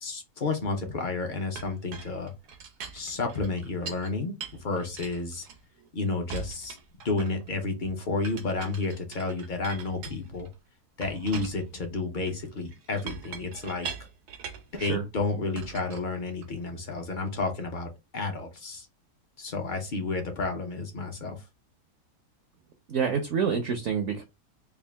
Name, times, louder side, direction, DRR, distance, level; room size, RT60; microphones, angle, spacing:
voice 1, 0.0-2.3 2.9-4.3 4.6-5.5 5.9-6.8 7.0-10.5 11.0-13.9 14.7-18.9 19.4-21.4, left 3 dB, 50° left, 4 dB, 0.6 m, -31 dB
Chink clink, 1.6-4.1 4.4-5.9 6.3-7.5 8.2-10.5 11.0-15.0 15.6-16.7, right 6 dB, 85° right, 1.3 m, -42 dB
voice 2, 22.9-24.2, right 6 dB, 65° right, 6 dB, 0.7 m, -27 dB
3.6 x 2.4 x 3.4 m, 0.25 s
omnidirectional pair, 1.7 m